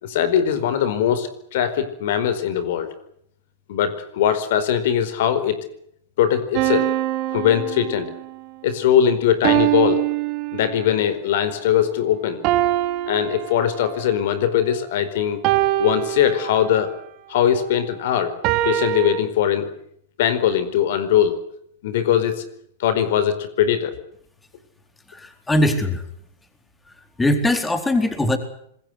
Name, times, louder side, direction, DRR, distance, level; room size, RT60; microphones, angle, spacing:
voice 1, 0.0-2.9 3.7-5.6 6.2-6.9 7.3-8.1 8.6-10.0 10.5-12.4 13.1-15.4 15.8-16.9 17.3-18.4 18.6-19.7 20.2-21.4 21.8-22.4 22.8-23.9, left 9 dB, 65° left, 13 dB, 4.7 m, -20 dB
sound 1, 6.5-8.3 9.4-11.1 12.4-14.1 15.4-16.9 18.4-19.2, right 15 dB, 45° right, 3.2 m, -23 dB
voice 2, 25.1-26.0 27.2-28.4, left 1 dB, 10° left, 7 dB, 4.1 m, -20 dB
26.5 x 21.5 x 7.9 m, 0.70 s
hypercardioid pair, 120°, 0 cm